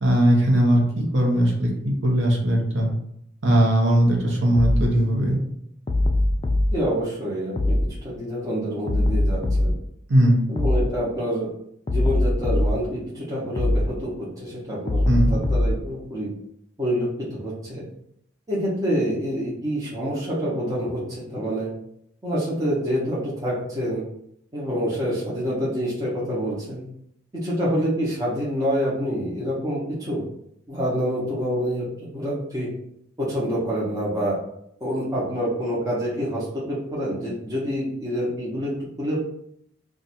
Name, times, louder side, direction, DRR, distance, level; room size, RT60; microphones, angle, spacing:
voice 1, 0.0-2.9 3.4-5.4 10.1-10.5 15.1-15.3, right 1 dB, 85° right, -2 dB, 0.9 m, -19 dB
sound 1, 4.6-4.9 5.9-6.7 7.6-7.9 8.9-9.8 10.6-10.9 11.9-12.8 13.6-13.9 14.9-15.8, left 1 dB, 25° left, 0.3 m, -21 dB
voice 2, 6.7-7.8 8.0-9.7 10.5-11.5 11.9-16.3 16.8-17.8 18.5-21.7 22.2-24.0 24.5-26.8 27.3-30.2 30.7-32.7 33.2-34.4 34.8-38.7 39.0-39.2, equal, 20° right, -8 dB, 0.9 m, -27 dB
2.6 x 2.4 x 4.2 m, 0.74 s
head